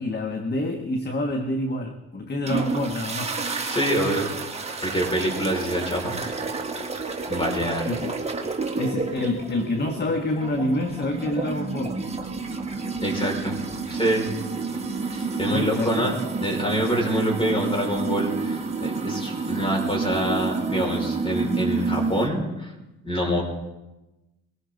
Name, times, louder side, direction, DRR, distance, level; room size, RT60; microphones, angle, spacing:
voice 1, 0.0-3.4 7.9-8.2 8.7-12.0 15.5-15.9, left 1 dB, 35° left, 6 dB, 1.4 m, -27 dB
sound 1, 2.4-22.3, right 4 dB, 20° right, 2.0 m, -30 dB
voice 2, 3.7-4.3 4.8-6.4 7.3-7.9 13.0-13.6 13.9-14.3 15.1-16.2 16.4-22.7 23.0-23.4, equal, 15° left, 0 dB, 5.4 m, -26 dB
22.0 x 16.5 x 4.0 m, 1.0 s
cardioid pair, 90°, 30 cm